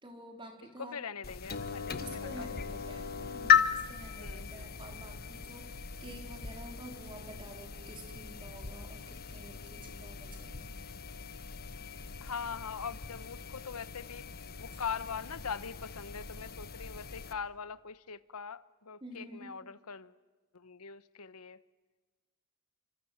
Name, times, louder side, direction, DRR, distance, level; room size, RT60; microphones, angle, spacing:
voice 1, 0.0-1.0 2.0-10.7 14.7-14.8 19.0-19.5, right 1 dB, 25° right, 4.1 m, -49 dB
voice 2, 0.8-2.8 4.2-4.7 12.2-14.2 14.6-20.1 20.5-21.6, left 6 dB, 85° left, 1.0 m, -42 dB
sound 1, 1.2-17.3, left 7 dB, 45° left, 1.2 m, -36 dB
27.0 x 26.0 x 7.9 m
head